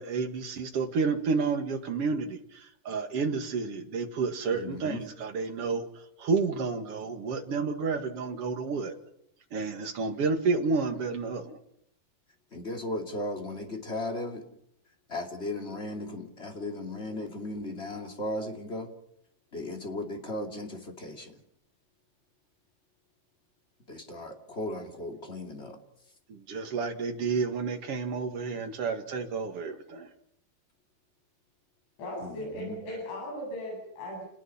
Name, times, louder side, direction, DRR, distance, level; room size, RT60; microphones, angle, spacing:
voice 1, 0.0-9.0 9.5-11.6 26.3-30.1, right 4 dB, 50° right, 5 dB, 1.8 m, -30 dB
voice 2, 4.5-5.0 12.5-14.4 15.1-18.9 19.5-21.3 23.9-25.8 32.2-32.8, left 1 dB, 20° left, 3 dB, 1.8 m, -36 dB
voice 3, 32.0-34.3, equal, 90° left, -1 dB, 10.5 m, -37 dB
29.0 x 20.0 x 5.7 m, 0.73 s
omnidirectional pair, 5.1 m